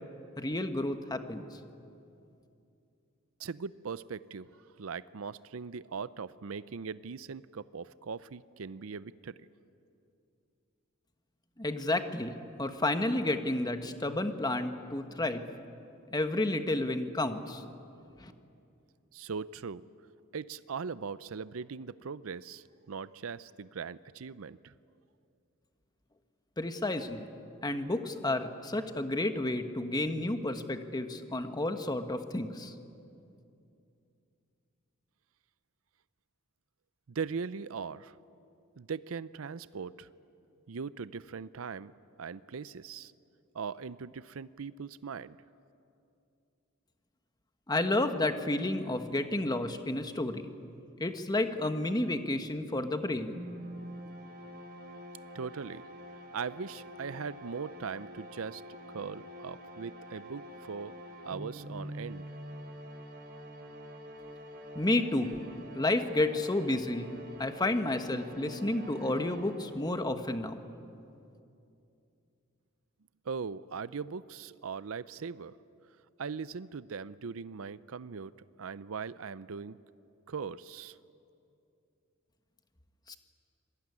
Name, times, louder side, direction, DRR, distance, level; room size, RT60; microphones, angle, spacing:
voice 1, 0.4-1.5 11.6-12.3 12.6-15.4 16.1-17.6 18.2-18.3 26.6-27.3 27.6-32.7 47.7-50.4 51.0-53.3 64.7-65.4 65.7-67.1 67.4-70.6 83.1-83.2, left 2 dB, 20° left, 8 dB, 1.3 m, -31 dB
voice 2, 3.4-4.5 4.8-9.4 19.1-19.8 20.3-24.7 37.1-38.2 38.8-40.1 40.7-41.9 42.2-43.1 43.5-45.4 55.3-55.8 56.3-58.6 58.9-61.0 61.2-62.2 73.3-75.6 76.2-78.3 78.6-79.8 80.3-81.0, right 5 dB, 70° right, 16 dB, 0.5 m, -40 dB
sound 1, 53.3-70.1, equal, 50° right, 3.7 m, -46 dB
26.5 x 20.5 x 9.7 m, 2.6 s
head